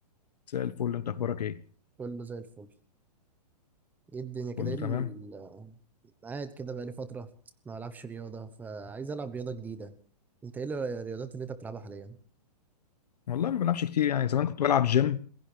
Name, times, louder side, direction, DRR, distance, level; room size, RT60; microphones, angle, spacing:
voice 1, 0.5-1.5 4.6-5.1 13.3-15.3, left 10 dB, 85° left, 1.3 m, -27 dB
voice 2, 2.0-2.7 4.1-5.7 6.2-7.3 7.6-9.9 10.4-12.2, right 4 dB, 10° right, 1.0 m, -38 dB
26.5 x 16.0 x 3.4 m
hypercardioid pair, 155°, 20 cm